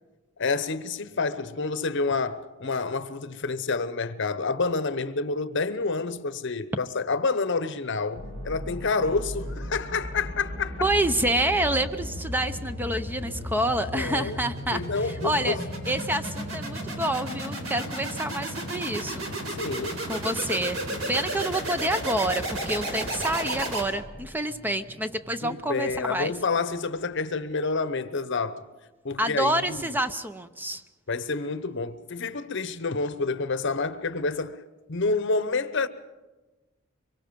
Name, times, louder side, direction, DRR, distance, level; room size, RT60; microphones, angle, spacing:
voice 1, 0.4-10.9 13.9-14.4 14.7-15.6 19.5-20.0 25.4-28.6 29.0-29.8 31.1-34.6 34.9-35.9, left 4 dB, 65° left, 0.9 m, -28 dB
sound 1, 8.2-24.3, right 1 dB, 85° right, 3.9 m, -34 dB
voice 2, 10.8-15.6 15.9-19.3 20.1-26.3 29.2-30.8, right 1 dB, 10° right, 0.7 m, -28 dB
sound 2, 10.9-27.7, equal, 45° right, 3.5 m, -51 dB
24.5 x 23.0 x 5.3 m
head